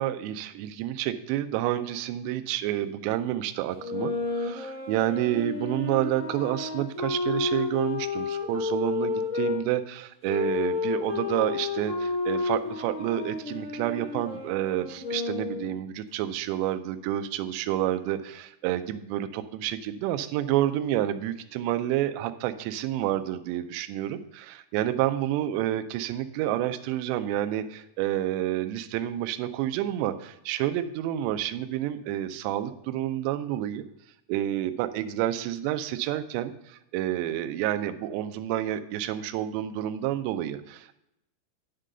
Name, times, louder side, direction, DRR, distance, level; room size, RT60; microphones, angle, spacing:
voice 1, 0.0-33.8 34.3-41.0, right 12 dB, 90° right, 9 dB, 2.5 m, -29 dB
sound 1, 3.7-9.6 10.3-15.7, left 4 dB, 75° left, 0.7 m, -31 dB
9.9 x 3.8 x 6.5 m, 0.84 s
omnidirectional pair, 5.6 m